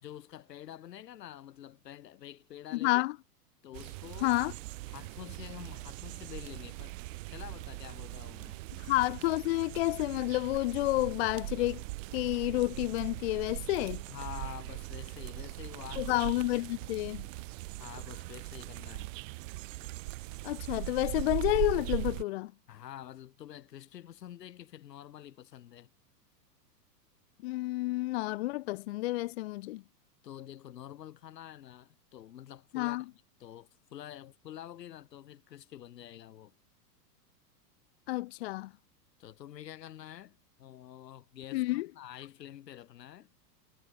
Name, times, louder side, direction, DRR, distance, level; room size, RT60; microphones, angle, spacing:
voice 1, 0.0-3.0 3.6-4.3 4.9-7.0 7.3-8.6 14.1-16.1 17.8-19.1 22.7-25.9 30.2-33.1 33.4-36.5 39.2-43.3, left 11 dB, 80° left, 3.9 m, -47 dB
voice 2, 2.7-3.2 4.2-4.5 8.8-11.8 12.1-14.0 16.0-17.3 20.4-22.5 27.4-29.8 32.7-33.0 38.1-38.7 41.5-41.9, left 19 dB, 45° left, 0.4 m, -30 dB
sound 1, 3.7-22.2, right 22 dB, 50° right, 1.3 m, -40 dB
hypercardioid pair, 135°, 49 cm